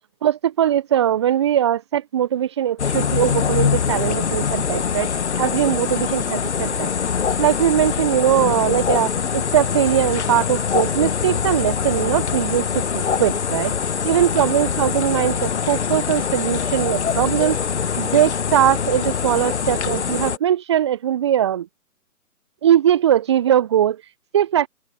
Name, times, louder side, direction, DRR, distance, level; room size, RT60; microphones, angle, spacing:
voice 1, 0.2-5.1 5.4-6.9 7.4-13.7 14.0-21.7 22.6-24.7, right 10 dB, 20° right, 1.0 m, -20 dB
sound 1, 2.8-20.4, left 7 dB, 45° left, 1.7 m, -23 dB
figure-of-eight pair, 140°, 45 cm